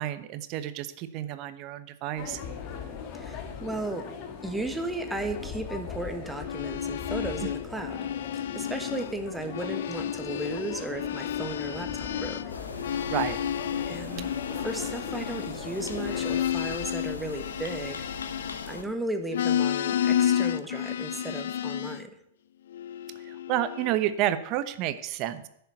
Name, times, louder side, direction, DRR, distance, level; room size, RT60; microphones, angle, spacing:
voice 1, 0.0-2.4 7.4-7.5 13.1-13.4 14.2-14.3 23.2-25.5, right 12 dB, 45° right, 12 dB, 1.0 m, -30 dB
sound 1, 2.2-16.5, left 6 dB, 45° left, 2.1 m, -40 dB
voice 2, 3.1-4.0 4.4-8.0 8.5-12.4 13.9-14.4 14.6-18.0 18.6-22.1, right 2 dB, 5° right, 6 dB, 1.5 m, -35 dB
sound 2, 6.3-9.2 9.4-18.9 19.3-22.0 22.7-24.0, left 10 dB, 65° left, 0.6 m, -31 dB
sound 3, 12.5-18.8, left 4 dB, 85° left, 1.5 m, -40 dB
10.5 x 7.0 x 9.3 m, 0.72 s
hypercardioid pair, 100°, 0 cm